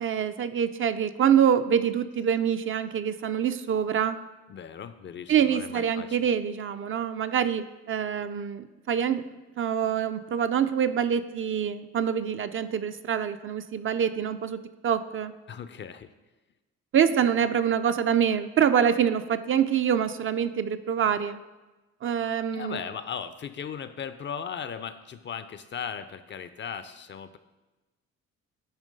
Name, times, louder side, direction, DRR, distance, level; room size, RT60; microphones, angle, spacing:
voice 1, 0.0-4.2 5.3-9.3 9.6-15.3 16.9-21.4 22.0-22.8, right 8 dB, 45° right, 10 dB, 0.4 m, -25 dB
voice 2, 4.5-6.2 15.5-16.1 22.5-27.4, left 7 dB, 40° left, 12 dB, 0.4 m, -37 dB
9.0 x 3.1 x 5.2 m, 1.1 s
cardioid pair, 90°, 30 cm